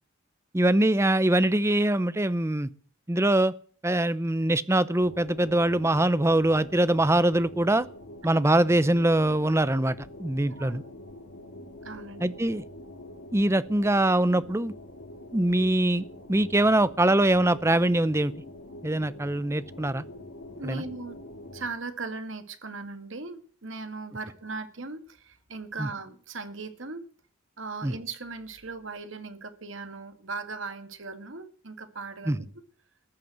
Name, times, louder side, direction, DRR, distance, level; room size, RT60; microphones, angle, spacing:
voice 1, 0.5-2.7 3.1-3.5 3.8-7.9 8.2-9.9 10.2-10.8 12.2-12.6 13.3-14.7 15.3-18.3 18.8-20.0 20.6-20.8 25.8-25.9 27.8-27.9 32.3-32.4, right 1 dB, 15° right, 0.6 m, -23 dB
sound 1, 5.0-21.7, left 1 dB, 75° left, 2.3 m, -45 dB
voice 2, 10.5-10.8 11.8-12.3 20.6-21.2 21.5-27.1 27.6-32.5, right 3 dB, 65° right, 2.0 m, -38 dB
14.5 x 10.5 x 7.8 m
head